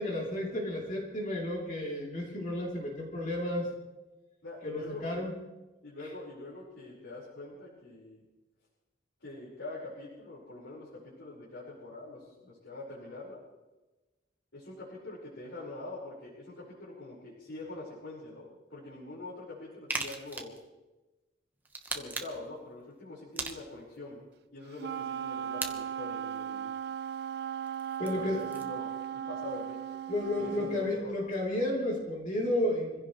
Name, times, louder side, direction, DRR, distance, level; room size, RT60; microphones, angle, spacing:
voice 1, 0.0-3.7 4.6-5.3 28.0-28.4 30.1-33.0, left 1 dB, 45° left, -3 dB, 3.3 m, -32 dB
voice 2, 4.4-5.2 5.8-8.2 9.2-13.4 14.5-20.6 21.9-26.7 28.0-29.8 30.2-31.2, left 2 dB, 90° left, -7 dB, 4.8 m, -44 dB
sound 1, 19.9-20.6 21.7-22.5 23.4-24.0 25.6-25.7 27.7-28.7, right 3 dB, 10° right, 1.2 m, -38 dB
Wind instrument woodwind instrument, 24.8-30.9, right 9 dB, 60° right, 0.5 m, -37 dB
26.0 x 16.0 x 3.2 m, 1.1 s
head